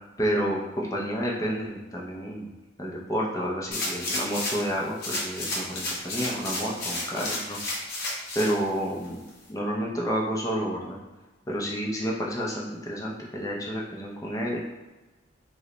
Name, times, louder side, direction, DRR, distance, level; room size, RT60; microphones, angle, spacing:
voice 1, 0.2-2.5 2.8-7.6 8.4-9.2 9.5-11.0 11.5-14.6, equal, 15° left, -3 dB, 0.4 m, -30 dB
sound 1, 3.7-4.7 5.0-8.5 9.0-9.1, left 1 dB, 50° left, 0.7 m, -32 dB
3.1 x 2.1 x 3.7 m, 1.2 s
head